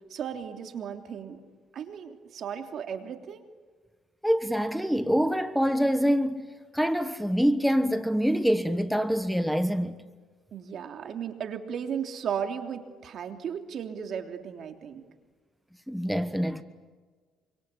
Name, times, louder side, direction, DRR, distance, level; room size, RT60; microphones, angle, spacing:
voice 1, 0.1-1.4 1.7-3.4 10.5-15.1, right 8 dB, 60° right, 3.2 m, -35 dB
voice 2, 4.2-6.5 6.7-10.0 15.9-16.6, equal, ahead, 1.3 m, -25 dB
26.5 x 25.5 x 8.6 m
cardioid pair, 95°, 0 cm